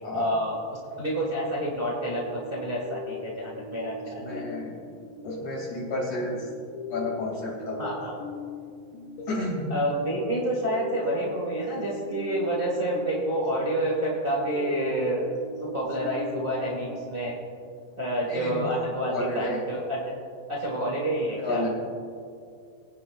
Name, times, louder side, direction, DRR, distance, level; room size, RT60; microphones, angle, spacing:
voice 1, 0.1-0.6 1.0-4.4 7.8-8.1 9.7-15.3 15.6-17.3 18.0-20.1 20.5-21.7, right 1 dB, 70° right, -4 dB, 0.5 m, -28 dB
sound 1, 1.4-17.7, left 3 dB, 85° left, 2.9 m, -41 dB
voice 2, 4.2-4.7 5.2-6.5 6.9-8.0 9.3-9.7 18.3-19.6 21.4-21.7, left 2 dB, 45° left, -4 dB, 3.6 m, -31 dB
23.0 x 9.4 x 2.6 m, 2.3 s
omnidirectional pair, 4.9 m